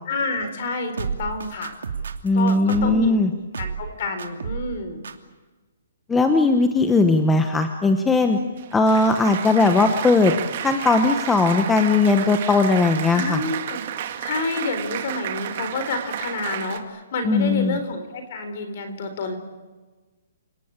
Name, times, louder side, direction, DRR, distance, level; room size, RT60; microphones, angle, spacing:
voice 1, 0.1-1.7 2.3-3.2 3.6-5.0 13.1-13.8 14.2-19.4, left 3 dB, 40° left, 8 dB, 4.1 m, -29 dB
sound 1, 1.0-3.1 3.5-3.9 4.2-4.8 5.0-5.1, right 6 dB, 85° right, 2.6 m, -31 dB
voice 2, 2.2-3.3 6.1-8.4 8.7-10.3 10.6-13.4 17.2-17.8, left 3 dB, 5° left, 6 dB, 1.0 m, -18 dB
Applause, 8.3-16.8, right 10 dB, 35° right, 1.9 m, -32 dB
28.5 x 19.0 x 8.9 m, 1.3 s
hypercardioid pair, 175°, 0 cm